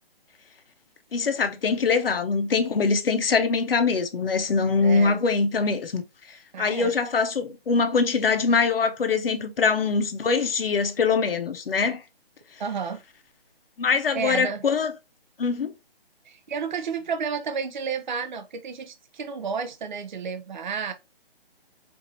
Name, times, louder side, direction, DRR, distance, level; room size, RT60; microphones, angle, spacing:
voice 1, 1.1-6.0 6.6-12.0 13.8-14.9 15.4-15.7, left 5 dB, 70° left, 0.8 m, -23 dB
voice 2, 4.8-5.2 6.5-6.9 12.6-13.0 14.1-14.7 16.2-20.9, right 6 dB, 50° right, 0.5 m, -31 dB
4.8 x 2.6 x 2.6 m
hypercardioid pair, 170°, 30 cm